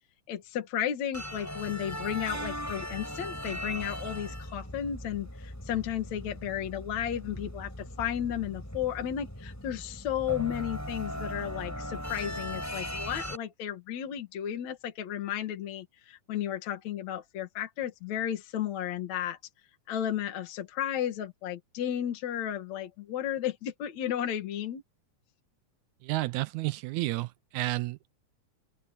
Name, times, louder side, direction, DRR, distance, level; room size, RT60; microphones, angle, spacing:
voice 1, 0.3-19.4 19.9-24.8, left 10 dB, 65° left, 2.9 m, -33 dB
sound 1, 1.1-13.4, equal, 5° left, 4.8 m, -39 dB
voice 2, 26.0-28.1, right 19 dB, 80° right, 1.9 m, -31 dB
open air
omnidirectional pair, 3.5 m